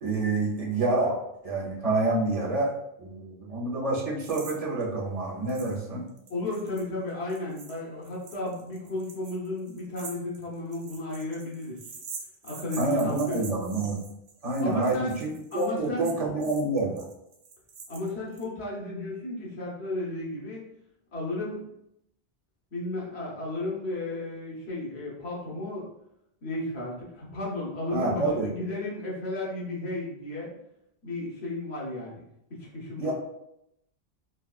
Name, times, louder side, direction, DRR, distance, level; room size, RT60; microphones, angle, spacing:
voice 1, 0.0-1.2 1.4-2.7 3.0-6.0 12.8-14.0 14.4-17.0 27.9-28.5 33.0-33.1, right 2 dB, 40° right, -3 dB, 0.7 m, -27 dB
sound 1, 4.2-4.6 4.8-4.9 5.5-5.8 6.1-18.4, right 5 dB, 85° right, 0.9 m, -45 dB
voice 2, 6.3-11.8 12.4-13.4 14.6-15.2 15.5-16.1 17.9-20.6 21.1-21.6 22.7-25.9 26.4-30.5 31.0-32.3 32.6-33.1, left 2 dB, 85° left, -4 dB, 1.3 m, -33 dB
4.0 x 2.3 x 2.4 m, 0.80 s
omnidirectional pair, 1.1 m